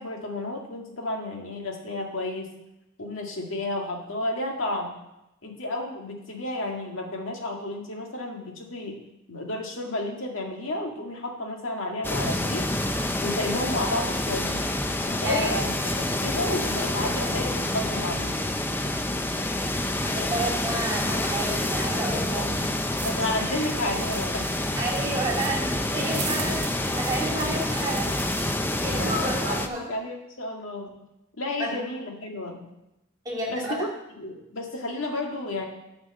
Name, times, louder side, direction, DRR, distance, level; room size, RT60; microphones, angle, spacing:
voice 1, 0.0-2.5 3.0-4.9 5.4-9.0 9.3-12.7 13.2-14.6 15.0-18.4 22.4-22.5 23.0-24.5 28.9-30.9 31.4-32.6 33.5-33.9 34.2-35.7, left 1 dB, 75° left, 1 dB, 1.9 m, -32 dB
sound 1, 12.0-29.7, left 1 dB, 10° left, 0.5 m, -27 dB
voice 2, 20.0-22.7 24.8-28.2 28.8-29.8 31.6-31.7 33.2-33.8, right 2 dB, 20° right, -3 dB, 2.9 m, -31 dB
sound 2, 23.0-28.4, right 5 dB, 40° right, 1.7 m, -40 dB
10.0 x 5.3 x 7.5 m, 0.89 s
head